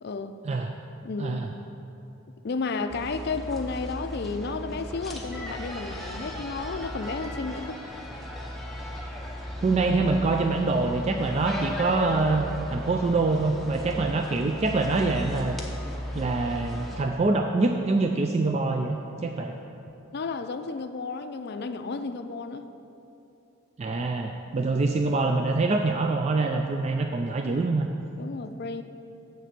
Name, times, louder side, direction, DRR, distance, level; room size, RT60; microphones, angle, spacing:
voice 1, 0.0-0.4 1.0-1.4 2.4-7.8 19.7-19.8 20.1-22.7 24.6-24.7 28.2-28.8, left 4 dB, 50° left, 9 dB, 0.4 m, -32 dB
sound 1, 2.9-17.0, left 1 dB, ahead, 0.8 m, -36 dB
voice 2, 9.6-15.5 16.1-19.5 23.8-27.9, right 3 dB, 30° right, 4 dB, 0.3 m, -25 dB
8.0 x 6.7 x 6.0 m, 2.8 s
head